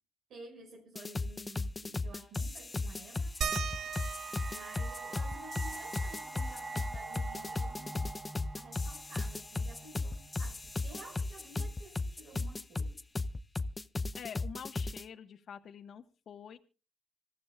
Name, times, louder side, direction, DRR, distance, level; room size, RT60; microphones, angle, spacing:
voice 1, 0.3-3.3 4.5-8.2 8.5-13.0, right 2 dB, 75° right, -2 dB, 5.8 m, -52 dB
sound 1, 1.0-15.0, left 3 dB, 25° left, 0.7 m, -36 dB
sound 2, 3.4-10.5, right 3 dB, 25° right, 4.6 m, -46 dB
sound 3, 3.4-8.5 8.9-9.0 9.3-11.1 12.3-12.4 13.2-13.3, right 7 dB, 60° right, 1.1 m, -42 dB
voice 2, 14.1-16.6, left 8 dB, 60° left, 6 dB, 1.3 m, -47 dB
26.0 x 14.5 x 2.4 m, 0.33 s
cardioid pair, 90°, 0 cm